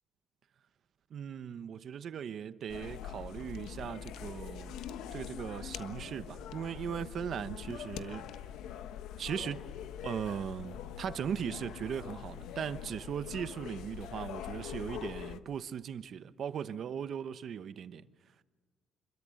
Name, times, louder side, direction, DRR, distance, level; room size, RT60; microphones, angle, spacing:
voice 1, 1.1-4.8 5.1-8.4 9.2-9.7 10.0-18.1, right 8 dB, 45° right, 1.0 m, -38 dB
sound 1, 2.7-15.4, left 9 dB, 80° left, 1.3 m, -43 dB
28.0 x 22.0 x 7.7 m
cardioid pair, 175°, 0 cm